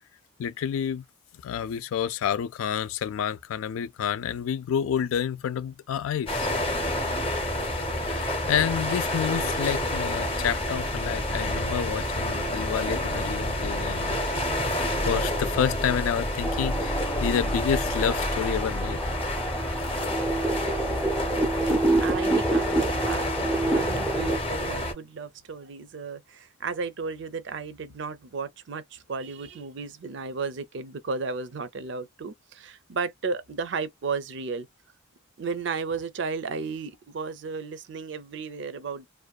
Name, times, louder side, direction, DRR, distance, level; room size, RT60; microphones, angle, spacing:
voice 1, 0.4-1.0 1.4-6.5 8.0-14.2 14.7-19.0, left 8 dB, 85° left, 0.3 m, -29 dB
sound 1, 6.3-24.9, left 1 dB, 25° left, 0.7 m, -29 dB
sound 2, 16.4-24.4, right 2 dB, 5° left, 0.3 m, -28 dB
voice 2, 21.6-34.7 35.4-39.1, right 4 dB, 60° right, 0.4 m, -34 dB
2.5 x 2.2 x 2.2 m
head